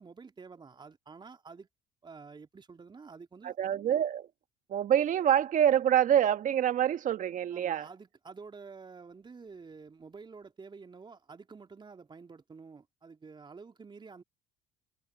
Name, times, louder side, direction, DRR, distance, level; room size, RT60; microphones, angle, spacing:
voice 1, 0.0-1.7 2.0-3.6 7.5-14.2, right 4 dB, 30° right, 3.1 m, -49 dB
voice 2, 3.4-4.3 4.7-7.9, right 10 dB, 50° right, 1.8 m, -26 dB
hypercardioid pair, 60°, 17 cm